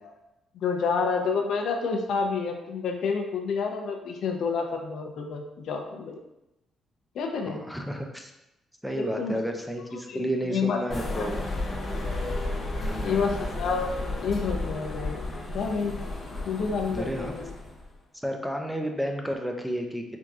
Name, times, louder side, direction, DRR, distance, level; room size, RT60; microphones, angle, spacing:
voice 1, 0.5-6.2 7.1-7.6 9.0-9.3 10.1-10.8 11.1-11.3 13.0-13.9 14.2-15.2 15.5-16.0 16.4-17.5, left 5 dB, 70° left, 3 dB, 0.5 m, -29 dB
voice 2, 7.4-8.3 8.8-11.4 12.8-13.3 16.9-17.3 18.1-20.0, equal, ahead, 3 dB, 0.4 m, -31 dB
sound 1, 10.9-17.8, left 2 dB, 40° left, 0.8 m, -33 dB
4.5 x 2.6 x 2.4 m, 0.93 s
cardioid pair, 90°, 0 cm